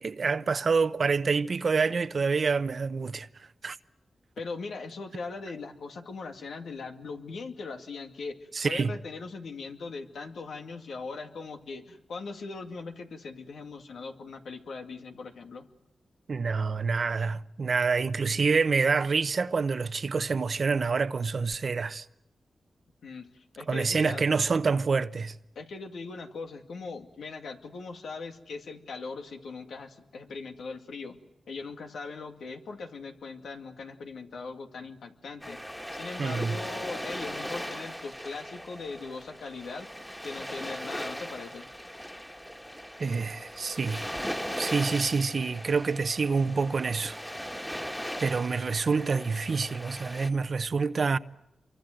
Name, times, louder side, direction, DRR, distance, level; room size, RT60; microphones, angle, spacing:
voice 1, 0.0-3.3 3.6-3.8 8.5-8.9 16.3-22.1 23.7-25.4 36.2-36.6 43.0-44.1 44.6-47.2 47.7-47.8 48.2-51.2, right 4 dB, 60° right, 0.9 m, -27 dB
voice 2, 4.4-15.7 23.0-24.3 25.6-31.2 31.5-35.6 35.9-39.9 40.2-41.7, left 4 dB, 85° left, 2.2 m, -40 dB
sound 1, 35.4-50.3, equal, 10° left, 2.1 m, -38 dB
27.0 x 24.0 x 7.8 m
cardioid pair, 70°, 0 cm